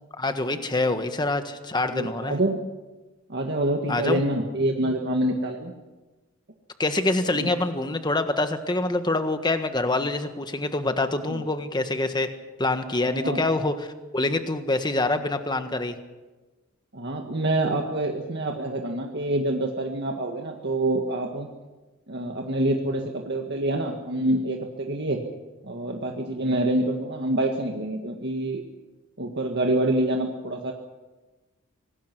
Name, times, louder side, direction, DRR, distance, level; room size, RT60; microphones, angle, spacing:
voice 1, 0.2-2.4 3.9-4.2 6.8-12.3 12.6-13.7 14.1-15.9, left 2 dB, 20° left, 8 dB, 1.4 m, -25 dB
voice 2, 1.9-2.6 3.3-5.7 7.3-7.5 11.3-11.4 13.1-13.5 16.9-21.5 22.1-25.2 25.6-28.6 29.2-30.7, right 1 dB, 55° right, 2 dB, 1.8 m, -26 dB
25.5 x 19.0 x 6.1 m, 1.2 s
head